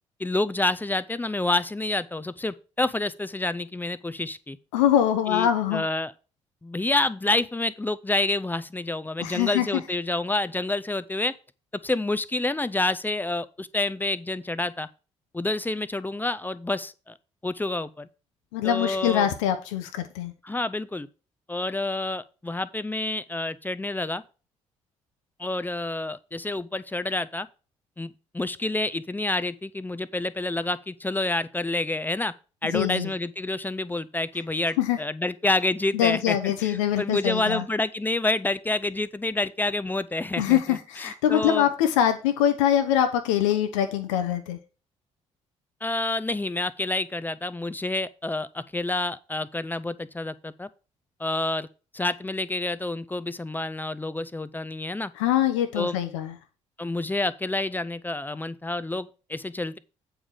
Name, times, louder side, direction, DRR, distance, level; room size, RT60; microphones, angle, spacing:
voice 1, 0.2-4.6 5.3-6.1 6.6-11.3 11.8-14.9 15.3-17.1 17.4-18.1 18.6-19.3 20.4-21.1 21.5-24.2 25.4-27.5 28.0-32.3 32.6-41.7 45.8-50.7 51.2-51.7 51.9-55.1 55.7-56.0 56.8-59.8, left 2 dB, 10° left, 0.6 m, -28 dB
voice 2, 4.7-5.8 9.2-9.7 18.5-20.3 32.6-33.1 34.8-35.0 35.9-37.6 40.4-44.6 55.2-56.3, left 10 dB, 70° left, 0.8 m, -23 dB
8.8 x 4.8 x 5.2 m
figure-of-eight pair, 45°, 16 cm